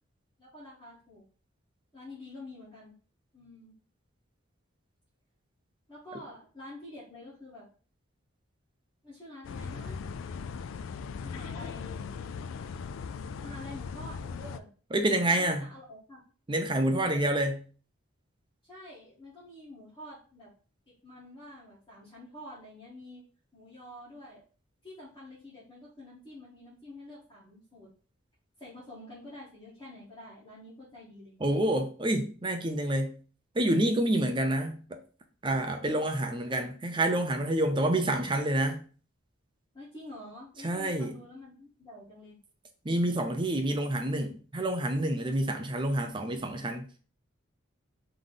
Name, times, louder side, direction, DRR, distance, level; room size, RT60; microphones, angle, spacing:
voice 1, 0.4-1.2 1.9-2.9 3.3-3.7 5.9-7.6 9.0-10.1 11.2-12.1 13.4-14.7 15.3-16.2 17.0-17.4 18.7-20.5 20.9-23.3 23.5-24.4 24.8-27.9 28.6-31.4 39.7-42.4, left 1 dB, 20° left, 1.5 m, -48 dB
sound 1, 9.4-14.6, left 5 dB, 75° left, 0.3 m, -39 dB
voice 2, 14.9-15.7 16.5-17.6 31.4-33.2 33.5-35.0 35.4-38.8 40.6-41.1 42.8-46.9, right 1 dB, 25° right, 0.5 m, -28 dB
3.7 x 3.2 x 3.9 m
head